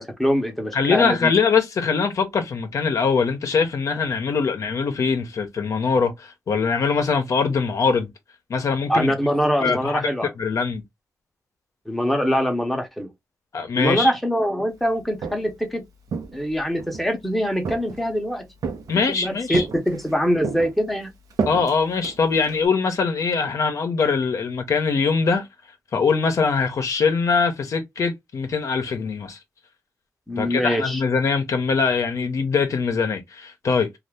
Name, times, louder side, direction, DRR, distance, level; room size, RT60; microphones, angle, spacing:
voice 1, 0.0-1.3 8.9-10.3 11.9-13.1 13.8-15.8 16.3-18.5 19.1-21.1 30.3-31.0, equal, ahead, 0.7 m, -23 dB
voice 2, 0.7-8.1 8.5-9.1 9.6-10.1 10.4-10.8 13.5-14.1 18.9-19.6 21.5-25.5 25.9-29.4 30.4-33.9, left 5 dB, 60° left, 0.6 m, -22 dB
Walk footsteps, 15.0-15.6 16.1-17.1 17.6-18.2 18.6-19.2 19.5-20.1 20.4-22.7, right 5 dB, 80° right, 0.7 m, -31 dB
2.7 x 2.4 x 3.3 m
wide cardioid pair, 120°, 6 cm